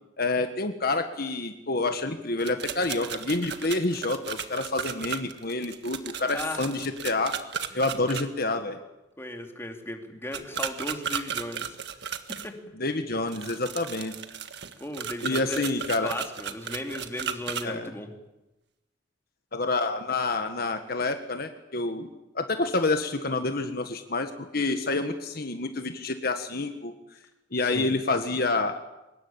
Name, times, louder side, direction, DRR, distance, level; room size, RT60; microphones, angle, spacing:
voice 1, 0.2-7.3 7.7-8.8 12.8-14.1 15.2-16.1 17.6-17.9 19.5-22.1 22.3-26.9 27.5-28.8, left 2 dB, 55° left, 7 dB, 1.6 m, -28 dB
sound 1, 2.4-8.2 10.3-12.5 13.3-17.6, right 8 dB, 60° right, 1.7 m, -35 dB
voice 2, 6.3-6.6 7.7-8.3 9.2-11.8 12.4-12.6 14.8-15.6 16.0-18.1 27.6-27.9, left 1 dB, 15° left, 3 dB, 2.9 m, -36 dB
24.5 x 20.5 x 8.8 m, 0.98 s
head